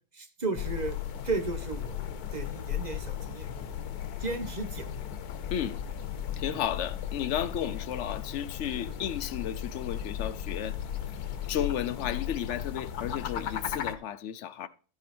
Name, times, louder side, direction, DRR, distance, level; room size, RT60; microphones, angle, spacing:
voice 1, 0.1-1.0 1.2-2.0 2.3-3.7 4.2-4.9 6.5-6.6 8.9-9.0, right 3 dB, 30° right, 1.1 m, -34 dB
sound 1, 0.6-13.9, left 9 dB, 90° left, 1.3 m, -36 dB
voice 2, 6.4-10.8 11.5-14.7, left 10 dB, 60° left, 0.8 m, -33 dB
14.0 x 5.0 x 4.3 m
omnidirectional pair, 1.6 m